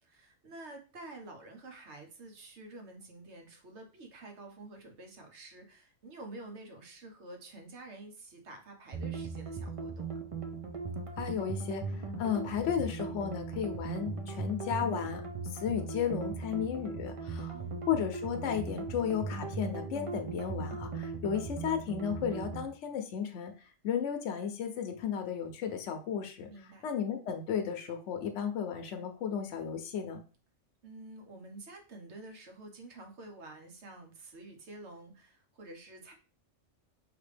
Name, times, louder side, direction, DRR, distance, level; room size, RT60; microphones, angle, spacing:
voice 1, 0.0-10.2 17.5-17.8 26.5-26.9 30.8-36.1, right 2 dB, 65° right, 3 dB, 1.3 m, -49 dB
sound 1, 8.9-22.6, right 4 dB, 40° right, 0.5 m, -38 dB
voice 2, 11.2-15.2 15.5-17.6 17.9-26.5 26.8-30.2, left 8 dB, 70° left, 6 dB, 1.0 m, -34 dB
5.1 x 2.9 x 3.3 m, 0.36 s
omnidirectional pair, 1.3 m